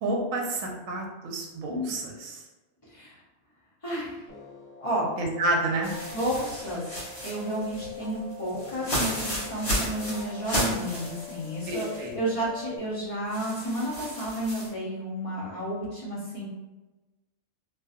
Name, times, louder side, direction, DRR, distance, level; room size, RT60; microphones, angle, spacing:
voice 1, 0.0-2.4 5.2-5.9 11.7-12.2, right 2 dB, 75° right, 0 dB, 0.9 m, -29 dB
voice 2, 2.9-3.2 3.8-4.2 4.8-5.1 6.1-6.9 7.2-16.5, right 1 dB, 35° left, -7 dB, 0.5 m, -31 dB
sound 1, 4.3-12.8, left 6 dB, 85° left, 1.1 m, -44 dB
sound 2, 5.8-12.1 12.4-12.5 13.3-14.7, equal, 65° left, 1.4 m, -33 dB
2.6 x 2.5 x 2.4 m, 1.1 s
omnidirectional pair, 1.5 m